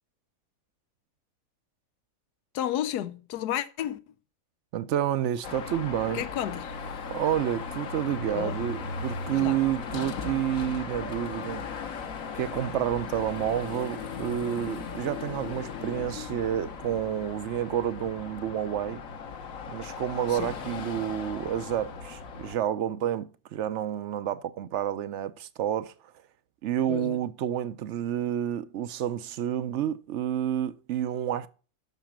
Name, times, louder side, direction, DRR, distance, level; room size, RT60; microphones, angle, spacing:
voice 1, 2.5-4.0 6.1-6.7 8.3-8.6 9.3-9.6 20.3-20.6 26.9-27.2, left 11 dB, 85° left, 1.3 m, -32 dB
voice 2, 4.7-6.2 7.1-11.6 12.3-19.0 19.7-25.9 26.6-31.5, right 10 dB, 65° right, 0.8 m, -29 dB
Car passing by / Traffic noise roadway noise / Engine, 5.4-22.5, left 5 dB, 60° left, 1.4 m, -37 dB
8.1 x 6.2 x 7.3 m
omnidirectional pair, 1.7 m